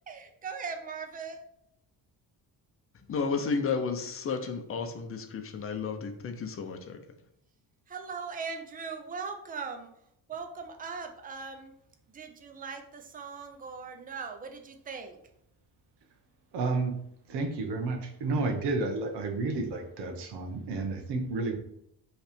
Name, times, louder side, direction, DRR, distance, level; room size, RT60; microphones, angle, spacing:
voice 1, 0.1-1.4 7.9-9.9 10.3-11.7 12.1-15.2, right 5 dB, 20° right, 0.6 m, -39 dB
voice 2, 3.1-7.0, left 5 dB, 35° left, 0.7 m, -32 dB
voice 3, 16.5-16.9 17.3-21.6, right 3 dB, 75° right, 1.1 m, -31 dB
5.5 x 3.3 x 5.1 m
cardioid pair, 175°, 41 cm